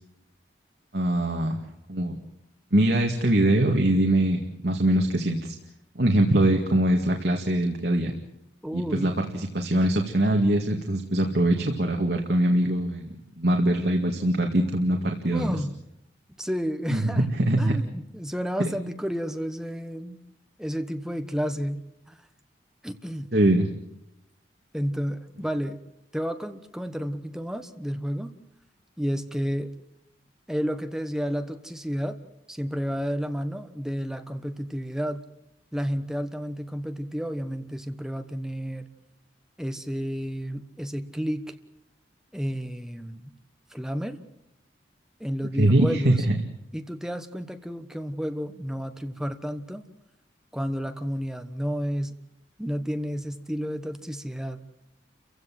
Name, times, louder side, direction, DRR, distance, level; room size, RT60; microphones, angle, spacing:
voice 1, 0.9-1.6 1.9-2.2 2.7-5.5 6.0-8.1 8.7-13.1 13.4-15.5 16.9-17.8 18.6-18.7 23.3-23.7 45.6-46.4, right 1 dB, 60° right, 2 dB, 2.2 m, -22 dB
voice 2, 8.6-9.2 15.3-15.8 16.4-17.3 17.6-20.2 20.6-22.2 22.8-23.3 24.7-25.8 26.1-28.3 29.0-29.8 30.5-32.2 32.5-35.2 35.7-38.9 39.6-41.5 42.3-43.3 43.7-44.2 45.2-46.2 46.7-49.8 50.5-52.2 52.6-54.6, equal, 5° right, 8 dB, 1.2 m, -31 dB
30.0 x 16.0 x 7.7 m, 0.83 s
head